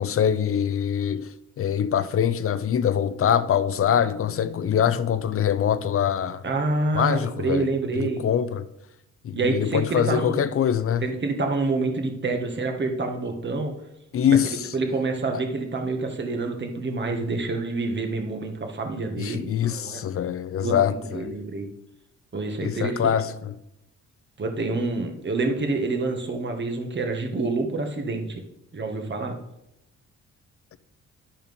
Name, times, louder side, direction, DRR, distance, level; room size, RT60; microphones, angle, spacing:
voice 1, 0.0-6.4 6.9-7.7 8.0-8.6 9.2-11.1 14.1-14.6 19.2-21.3 22.6-23.5, left 9 dB, 45° left, 0.6 m, -24 dB
voice 2, 6.4-8.2 9.3-10.4 11.0-13.7 14.7-20.0 20.6-21.7 22.3-23.2 24.4-28.4 28.7-29.4, right 3 dB, 35° right, 1.6 m, -27 dB
11.0 x 4.4 x 5.3 m
cardioid pair, 90°, 30 cm